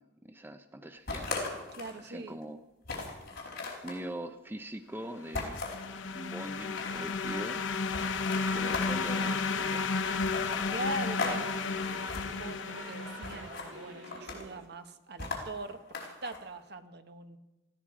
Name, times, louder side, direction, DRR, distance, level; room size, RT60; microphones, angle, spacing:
voice 1, 0.0-1.4 2.0-2.6 3.8-5.6 6.1-7.6 8.5-10.1, right 1 dB, 10° right, 9 dB, 0.6 m, -42 dB
sound 1, 1.1-2.0 2.4-2.5 2.8-4.0 5.3-5.9 6.5-7.2 7.9-9.2 10.2-11.4 11.7-12.3 13.2-13.7 14.0-14.6 15.2-16.4, left 3 dB, 55° left, 4.3 m, -38 dB
voice 2, 1.7-2.4 10.7-17.4, right 2 dB, 60° right, 8 dB, 1.2 m, -41 dB
sound 2, 5.2-13.9, left 4 dB, 75° left, 0.9 m, -33 dB
Singing / Musical instrument, 9.2-14.7, right 2 dB, 80° right, 2.0 m, -50 dB
19.0 x 15.0 x 4.9 m, 1.0 s
head